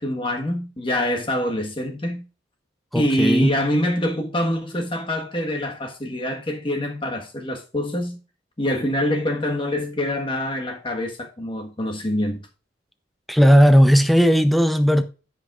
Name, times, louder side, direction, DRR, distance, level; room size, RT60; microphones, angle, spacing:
voice 1, 0.0-2.2 2.9-8.2 8.6-12.4, left 1 dB, 30° left, 1.5 m, -25 dB
voice 2, 2.9-3.6 13.3-15.0, equal, ahead, 0.6 m, -16 dB
15.0 x 5.3 x 2.5 m
head